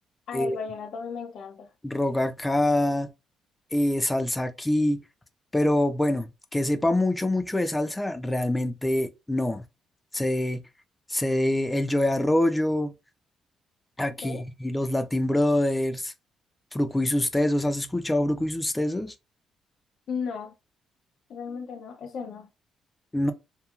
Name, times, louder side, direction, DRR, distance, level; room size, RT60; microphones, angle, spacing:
voice 1, 0.3-1.7 14.2-14.4 20.1-20.5 21.3-22.5, left 6 dB, 65° left, 0.4 m, -35 dB
voice 2, 1.8-3.1 3.7-5.0 5.5-9.6 10.1-10.6 11.1-12.9 14.0-16.1 16.7-19.1 23.1-23.3, left 1 dB, 15° left, 0.4 m, -25 dB
3.0 x 2.3 x 2.3 m
cardioid pair, 90°, 0 cm